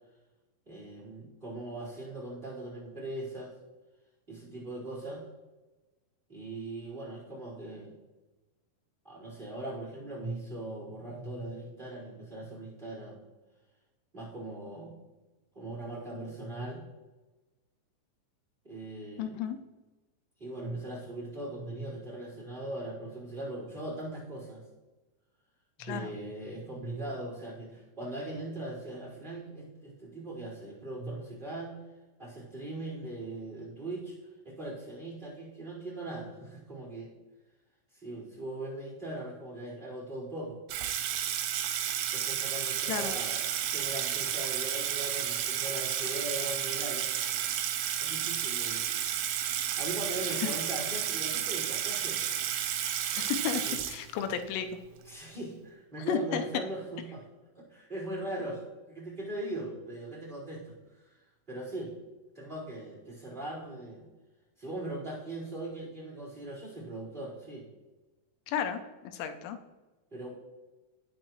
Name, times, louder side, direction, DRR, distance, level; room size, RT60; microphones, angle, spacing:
voice 1, 0.7-3.5 4.3-5.2 6.3-7.9 9.0-13.2 14.1-15.0 15.5-16.9 18.6-19.4 20.4-24.6 25.8-31.8 32.2-34.2 34.4-37.1 38.0-40.6 42.1-43.4 43.7-47.1 48.0-48.8 49.8-52.2 55.1-57.2 57.5-58.6 58.9-60.8 61.0-61.1 61.5-61.9 62.3-64.1 64.6-67.7 70.1-70.3, right 1 dB, 10° right, -6 dB, 3.9 m, -40 dB
voice 2, 19.2-19.6 25.8-26.1 42.9-43.2 50.3-50.5 53.2-54.7 56.0-56.4 68.5-69.6, left 8 dB, 85° left, 7 dB, 3.4 m, -33 dB
Water tap faucet / Sink (filling or washing), 40.7-54.4, right 10 dB, 85° right, 3.5 m, -32 dB
18.5 x 7.8 x 3.1 m, 1.1 s
omnidirectional pair, 5.9 m